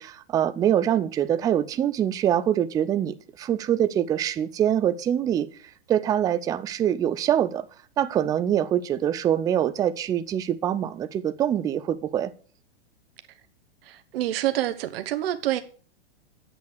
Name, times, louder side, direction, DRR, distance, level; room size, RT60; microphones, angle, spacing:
voice 1, 0.0-5.5 5.9-7.6 8.0-12.3, right 10 dB, 10° right, 0.4 m, -24 dB
voice 2, 13.9-15.6, right 13 dB, 60° right, 1.0 m, -27 dB
8.6 x 6.3 x 6.4 m
hypercardioid pair, 125°, 33 cm